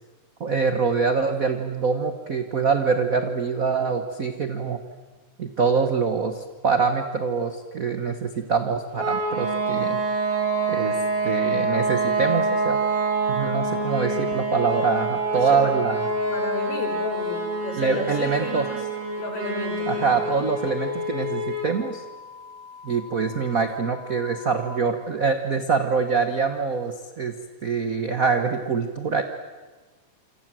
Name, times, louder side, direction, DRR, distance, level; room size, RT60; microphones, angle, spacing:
voice 1, 0.4-4.8 5.4-10.0 10.7-11.0 11.2-12.8 13.3-16.0 17.8-18.6 19.9-22.0 22.8-27.3 27.6-29.2, right 5 dB, 50° right, 7 dB, 1.0 m, -24 dB
sound 1, 9.0-21.8, right 3 dB, 85° right, 5.4 m, -26 dB
sound 2, 9.1-24.7, left 5 dB, 65° right, 7.4 m, -44 dB
voice 2, 15.3-15.7 16.3-18.8 19.2-20.2, left 3 dB, 50° left, 4 dB, 5.7 m, -33 dB
27.5 x 26.5 x 7.7 m, 1.3 s
omnidirectional pair, 3.5 m